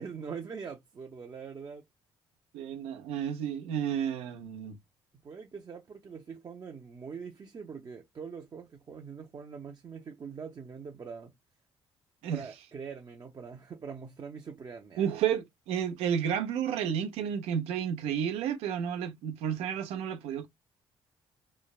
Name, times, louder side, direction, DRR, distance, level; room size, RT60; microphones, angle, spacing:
voice 1, 0.0-1.8 5.2-11.3 12.3-15.1, right 6 dB, 40° right, 0.6 m, -43 dB
voice 2, 2.5-4.8 12.2-12.4 15.0-20.5, right 8 dB, 90° right, 0.7 m, -31 dB
3.2 x 2.1 x 2.3 m
cardioid pair, 80°, 10 cm